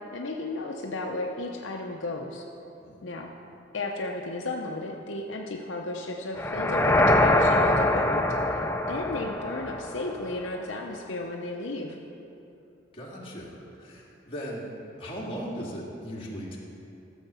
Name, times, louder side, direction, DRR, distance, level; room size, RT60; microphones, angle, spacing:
voice 1, 0.1-2.4 3.0-3.3 3.7-12.0, left 2 dB, 70° left, 0 dB, 0.8 m, -34 dB
sound 1, 6.4-10.5, left 1 dB, 10° left, 0.4 m, -24 dB
voice 2, 12.9-14.7 15.0-16.6, equal, 30° left, -4 dB, 1.9 m, -38 dB
13.0 x 7.1 x 5.6 m, 2.8 s
head